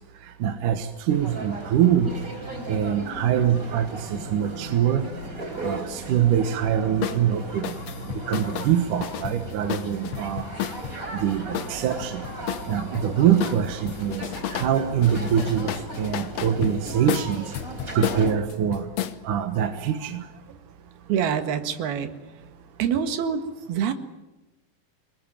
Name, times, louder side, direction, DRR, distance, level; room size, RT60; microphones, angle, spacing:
voice 1, 0.4-2.1 2.7-5.0 5.6-7.8 8.1-10.5 11.2-12.2 12.7-14.2 14.5-17.5 17.9-18.9 19.2-20.3, right 9 dB, 65° right, 7 dB, 2.6 m, -24 dB
sound 1, 1.1-18.3, right 1 dB, 20° right, 4.4 m, -37 dB
sound 2, 7.0-7.2 7.6-11.0 11.5-13.1 13.4-14.7 15.0-19.2, left 11 dB, 65° left, 1.7 m, -32 dB
voice 2, 21.1-22.1 22.8-23.9, right 8 dB, 90° right, 8 dB, 3.7 m, -25 dB
27.0 x 21.0 x 9.0 m, 1.0 s
omnidirectional pair, 4.3 m